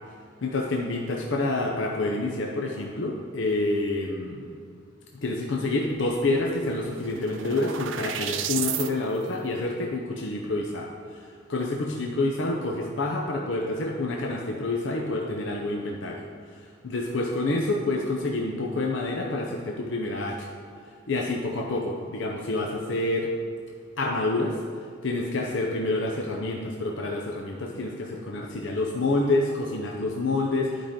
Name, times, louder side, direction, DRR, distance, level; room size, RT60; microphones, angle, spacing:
voice 1, 0.4-4.5 5.2-16.2 16.8-20.5 21.1-23.3 24.0-24.6 25.0-30.9, left 2 dB, 70° left, 0 dB, 0.6 m, -28 dB
sound 1, 6.0-6.1 6.4-8.9, right 10 dB, 70° right, 0.4 m, -33 dB
11.0 x 5.0 x 3.7 m, 2.3 s
head